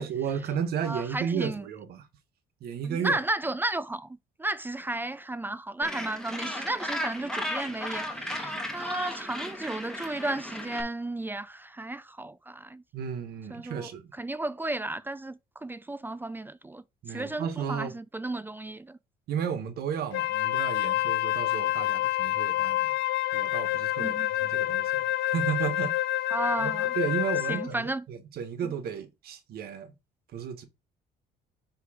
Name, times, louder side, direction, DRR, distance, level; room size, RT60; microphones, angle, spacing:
voice 1, 0.0-2.1 2.6-3.2 12.9-14.1 17.0-17.9 19.3-22.9 23.3-25.9 26.6-29.9 30.3-30.7, right 7 dB, 65° right, 1.3 m, -33 dB
voice 2, 0.9-1.7 2.8-12.8 13.5-13.9 14.2-16.8 17.1-19.0 24.0-24.3 26.3-26.9 27.5-28.0 28.6-28.7, right 2 dB, 10° right, 0.4 m, -33 dB
Gull seagull, 5.8-10.8, left 1 dB, 5° left, 1.5 m, -35 dB
Wind instrument woodwind instrument, 20.1-27.7, left 15 dB, 85° left, 0.4 m, -28 dB
5.8 x 3.3 x 5.0 m
cardioid pair, 110°, 17 cm